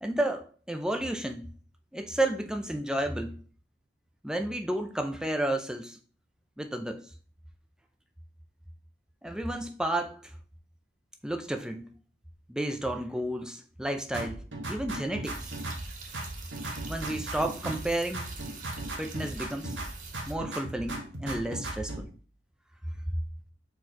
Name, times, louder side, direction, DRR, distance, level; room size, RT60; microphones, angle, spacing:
voice 1, 0.0-1.5 1.9-3.4 4.2-6.0 6.6-7.0 9.2-10.3 11.2-11.9 12.5-15.5 16.9-18.3 19.0-19.7 20.3-22.1, right 1 dB, 5° right, 0.5 m, -32 dB
sound 1, 14.1-17.9 18.1-19.9 20.1-22.0, right 1 dB, 85° right, 1.5 m, -37 dB
sound 2, 15.2-20.3, right 3 dB, 45° right, 0.9 m, -44 dB
4.5 x 4.4 x 4.7 m
head